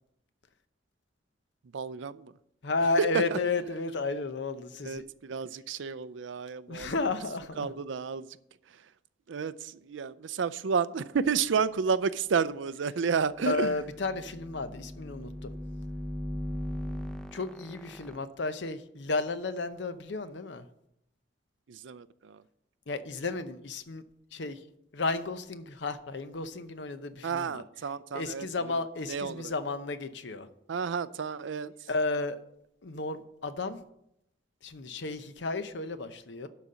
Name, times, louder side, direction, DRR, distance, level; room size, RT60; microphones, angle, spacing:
voice 1, 1.7-2.4 3.0-3.4 4.8-6.9 7.6-8.4 8.7-8.9 9.3-13.8 16.9-17.0 21.7-22.4 27.2-29.5 30.7-31.9, right 6 dB, 75° right, 16 dB, 0.4 m, -31 dB
voice 2, 2.6-5.0 6.7-7.7 13.4-15.5 17.3-20.7 22.9-24.0 24.3-24.6 24.9-27.6 28.1-30.5 31.9-32.4 32.8-33.8 34.6-36.5, left 3 dB, 65° left, 11 dB, 0.7 m, -33 dB
sound 1, 13.4-18.2, equal, 5° left, 0.5 m, -39 dB
12.0 x 4.1 x 7.4 m, 0.78 s
head